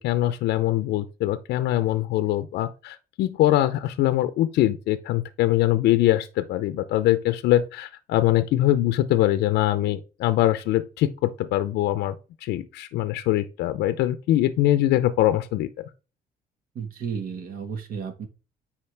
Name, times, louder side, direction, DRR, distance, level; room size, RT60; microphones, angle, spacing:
voice 1, 0.0-12.2 12.4-15.7, left 14 dB, 80° left, 0.6 m, -23 dB
voice 2, 16.7-18.3, right 6 dB, 60° right, 1.7 m, -33 dB
8.6 x 4.8 x 3.4 m
cardioid pair, 110°, 17 cm